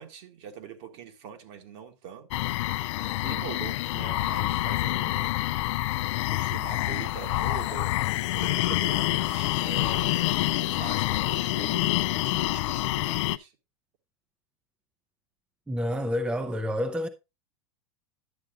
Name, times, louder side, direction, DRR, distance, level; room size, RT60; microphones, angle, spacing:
voice 1, 0.0-2.3 3.2-5.3 6.3-13.5, right 9 dB, 60° right, 1.6 m, -43 dB
sound 1, 2.3-13.4, left 17 dB, 65° left, 0.4 m, -27 dB
voice 2, 15.7-17.1, equal, 5° right, 0.6 m, -28 dB
11.0 x 7.6 x 2.5 m
hypercardioid pair, 105°, 17 cm